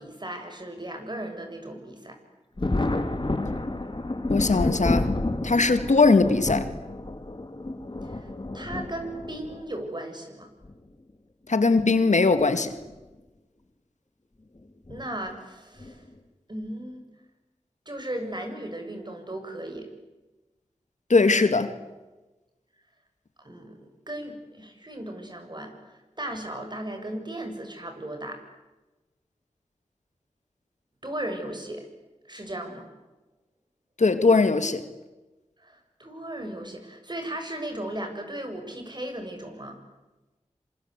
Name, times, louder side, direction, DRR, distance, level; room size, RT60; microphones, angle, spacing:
voice 1, 0.0-2.2 8.0-10.5 14.9-16.0 16.5-17.0 17.9-19.9 23.4-28.4 31.0-31.9 32.3-32.8 35.6-39.8, right 1 dB, 35° right, 7.4 m, -36 dB
Thunder, 2.6-9.6 10.6-10.7 12.2-12.5 12.8-12.9 14.9-15.1 15.8-16.1, left 2 dB, 40° left, 3.2 m, -30 dB
voice 2, 4.3-6.7 11.5-12.7 21.1-21.7 34.0-34.8, left 3 dB, 80° left, 2.1 m, -20 dB
27.0 x 26.5 x 8.2 m
cardioid pair, 40°, 12 cm